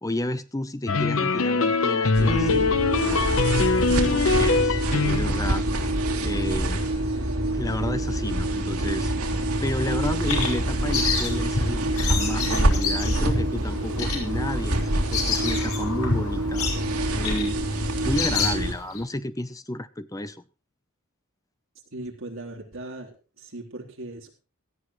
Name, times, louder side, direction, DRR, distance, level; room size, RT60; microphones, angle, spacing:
voice 1, 0.0-2.7 3.0-3.6 4.1-5.6 6.2-6.8 7.5-9.1 9.6-16.7 17.1-20.4, left 1 dB, 15° left, 12 dB, 0.7 m, -32 dB
sound 1, 0.9-5.5, left 4 dB, 60° left, 0.9 m, -22 dB
sound 2, 2.1-18.7, right 1 dB, 85° right, 3.1 m, -26 dB
Bird vocalization bird call bird song, 9.8-19.0, left 5 dB, 85° left, 5.0 m, -30 dB
voice 2, 21.9-24.3, right 2 dB, 60° right, -1 dB, 3.8 m, -38 dB
17.5 x 13.5 x 3.2 m, 0.33 s
head